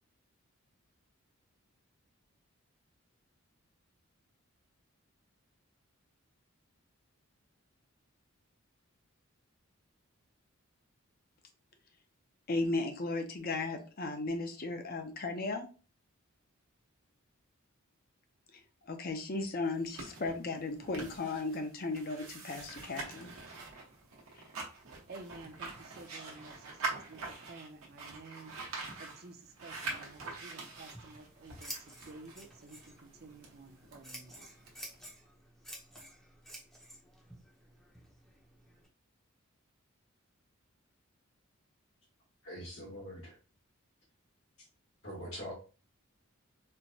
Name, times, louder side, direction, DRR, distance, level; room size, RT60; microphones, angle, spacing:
voice 1, 12.5-15.7 18.5-23.3, left 3 dB, 45° left, 0.6 m, -36 dB
sound 1, 19.6-35.1, right 3 dB, 80° right, 1.0 m, -45 dB
voice 2, 25.1-27.2 27.5-28.5 29.0-34.3, right 3 dB, 45° right, 0.5 m, -52 dB
Scissors, 30.7-38.9, right 1 dB, ahead, 0.6 m, -51 dB
voice 3, 42.4-43.3 45.0-45.5, equal, 75° left, 1.4 m, -43 dB
4.4 x 2.2 x 2.7 m
head